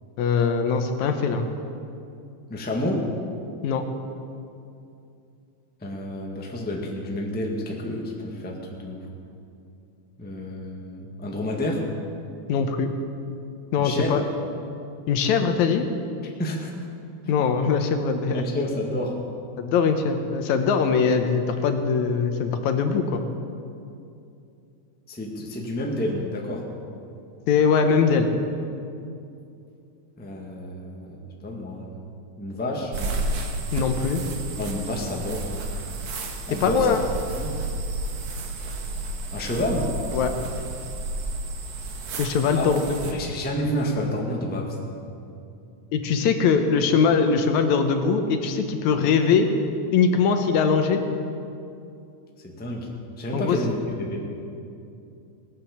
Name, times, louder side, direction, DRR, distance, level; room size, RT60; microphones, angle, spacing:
voice 1, 0.2-1.5 3.6-3.8 12.5-12.9 13.7-14.2 15.1-15.9 17.3-18.4 19.6-23.2 27.5-28.3 33.7-34.2 36.6-37.0 40.1-40.3 42.2-43.0 45.9-49.5 49.9-51.0 53.3-53.6, left 5 dB, 75° left, 6 dB, 2.1 m, -21 dB
voice 2, 2.5-3.1 5.8-9.1 10.2-11.8 13.8-14.2 16.4-16.7 17.2-17.3 18.3-19.2 25.1-26.6 30.2-32.0 32.4-33.2 34.6-35.5 36.5-36.9 37.4-37.5 39.3-39.9 42.5-42.7 43.1-44.8 52.4-52.9 53.2-54.3, left 1 dB, 5° left, -1 dB, 0.9 m, -29 dB
sound 1, 32.9-43.1, right 2 dB, 60° right, 2.4 m, -31 dB
17.5 x 10.0 x 7.2 m, 2.6 s
omnidirectional pair, 3.5 m